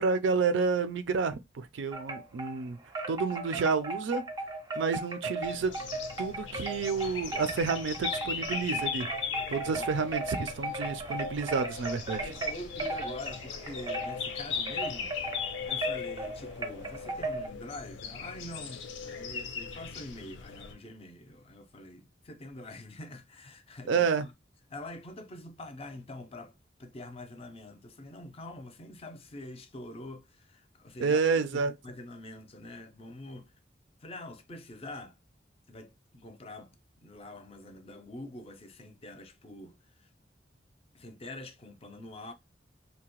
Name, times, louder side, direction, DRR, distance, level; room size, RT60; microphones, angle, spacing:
voice 1, 0.0-2.8 3.1-4.2 4.8-5.7 6.2-9.1 9.5-12.2 23.9-24.3 31.0-31.7, right 5 dB, 80° right, 0.4 m, -29 dB
Wind chime, 1.9-2.6 2.9-17.5, right 2 dB, 20° right, 0.5 m, -36 dB
sound 1, 5.4-20.7, left 6 dB, 85° left, 0.5 m, -39 dB
voice 2, 12.2-24.3 24.7-26.5 26.8-31.2 31.5-33.5 34.0-35.2 35.7-36.7 37.0-40.1 40.9-42.3, left 1 dB, 35° left, 0.4 m, -45 dB
2.8 x 2.1 x 2.9 m
head